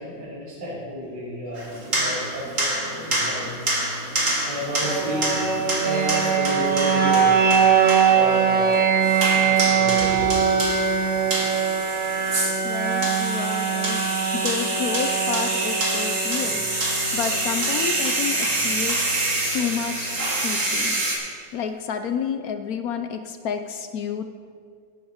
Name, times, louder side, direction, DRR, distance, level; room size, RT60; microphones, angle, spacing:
voice 1, 0.0-3.4 4.5-5.3 5.8-7.3 8.1-8.9 9.3-10.4, right 1 dB, 65° right, -7 dB, 3.4 m, -31 dB
sound 1, 1.5-21.2, right 2 dB, 45° right, 2.2 m, -27 dB
sound 2, 4.8-18.8, right 7 dB, 85° right, 1.9 m, -22 dB
voice 2, 12.6-14.0 14.3-19.1 19.5-21.0 21.5-24.2, left 7 dB, 70° left, 8 dB, 0.9 m, -30 dB
18.0 x 7.9 x 3.5 m, 2.2 s
omnidirectional pair, 2.0 m